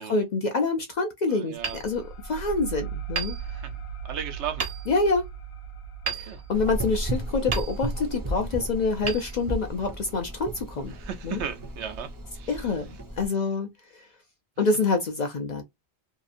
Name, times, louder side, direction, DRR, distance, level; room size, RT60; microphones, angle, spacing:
voice 1, 0.0-3.4 4.9-5.2 6.1-10.9 11.2-11.4 12.5-13.7 14.6-15.6, left 3 dB, 55° left, 0.5 m, -26 dB
voice 2, 1.3-1.8 3.4-4.7 6.0-6.4 10.9-12.7, right 8 dB, 90° right, 0.9 m, -37 dB
sound 1, 1.6-10.8, right 7 dB, 80° left, 0.9 m, -40 dB
Hammer, 1.6-2.6 3.1-4.0 4.6-5.2 6.1-7.0 7.5-8.2 9.0-10.0, right 6 dB, 65° right, 1.0 m, -35 dB
Gurgling / Engine, 6.5-13.3, right 1 dB, 30° right, 0.4 m, -34 dB
2.8 x 2.4 x 2.5 m
omnidirectional pair, 1.1 m